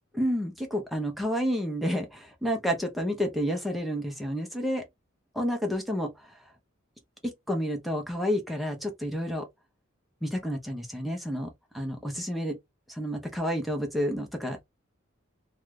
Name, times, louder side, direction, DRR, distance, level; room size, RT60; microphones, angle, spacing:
voice 1, 0.1-4.8 5.3-6.4 7.2-9.5 10.2-12.6 12.9-14.6, equal, ahead, 0.7 m, -30 dB
2.7 x 2.3 x 3.2 m
head